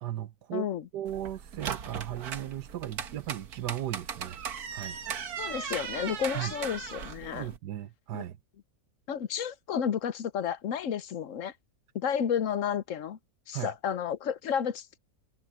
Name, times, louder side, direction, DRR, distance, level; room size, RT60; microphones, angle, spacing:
voice 1, 0.0-0.7 0.9-4.4 4.7-5.0 6.3-6.5 7.3-8.4 13.5-13.7, right 12 dB, 90° right, 1.5 m, -36 dB
voice 2, 0.5-0.9 5.4-7.5 8.1-8.2 9.1-11.5 11.9-13.2 13.5-15.0, left 8 dB, 60° left, 1.1 m, -31 dB
sound 1, 1.1-7.6, right 7 dB, 65° right, 1.7 m, -38 dB
omnidirectional pair, 1.8 m